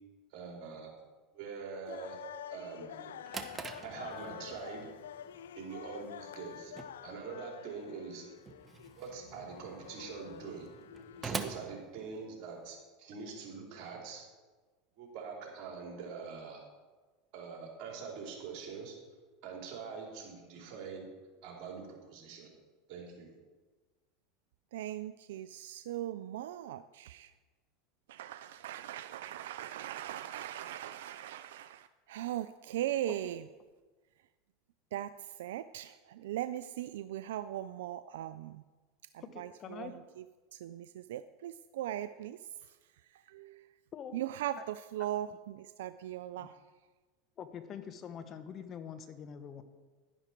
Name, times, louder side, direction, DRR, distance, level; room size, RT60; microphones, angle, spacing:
voice 1, 0.3-0.9 1.3-2.2 2.5-3.2 3.8-4.9 5.6-6.7 7.0-8.2 9.0-10.7 11.2-14.2 15.0-16.6 17.3-18.9 19.4-21.1 21.4-22.5 22.9-23.3, right 5 dB, 55° right, -1 dB, 4.1 m, -44 dB
sound 1, 1.9-11.3, left 10 dB, 90° left, 0.3 m, -48 dB
Drawer open or close, 2.9-12.7, right 4 dB, 20° right, 1.1 m, -46 dB
voice 2, 24.7-27.3 28.1-33.4 34.9-38.6 39.1-40.2 40.5-42.8 43.1-43.7 44.1-46.6, right 12 dB, 80° right, 13 dB, 0.3 m, -39 dB
voice 3, 39.2-39.9 43.9-44.2 46.4-46.5 47.4-49.6, left 7 dB, 40° left, 10 dB, 1.0 m, -45 dB
11.0 x 11.0 x 4.5 m, 1.3 s
hypercardioid pair, 100°, 0 cm